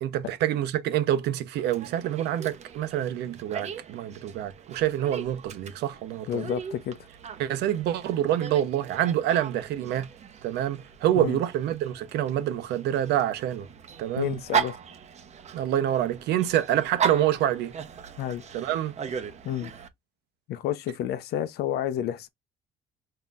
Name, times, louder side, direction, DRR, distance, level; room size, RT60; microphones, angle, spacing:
voice 1, 0.0-6.4 7.4-10.1 10.4-13.7 14.0-14.4 15.5-17.7 18.5-19.0, right 11 dB, 80° right, 0.8 m, -27 dB
Dog, 1.6-19.9, right 7 dB, 40° right, 0.8 m, -37 dB
voice 2, 6.3-7.0 11.2-11.4 14.2-14.8 18.2-18.4 19.4-19.7 20.5-22.3, left 11 dB, 75° left, 0.7 m, -30 dB
5.3 x 2.9 x 2.4 m
cardioid pair, 110°, 17 cm